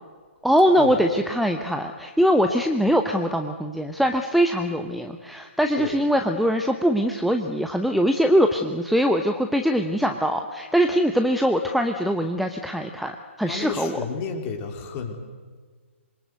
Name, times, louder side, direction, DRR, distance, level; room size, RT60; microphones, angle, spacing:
voice 1, 0.4-14.0, equal, ahead, 5 dB, 0.9 m, -22 dB
voice 2, 13.5-15.1, left 5 dB, 25° left, 3 dB, 3.6 m, -32 dB
26.5 x 23.0 x 8.2 m, 1.5 s
figure-of-eight pair, 125°, 7 cm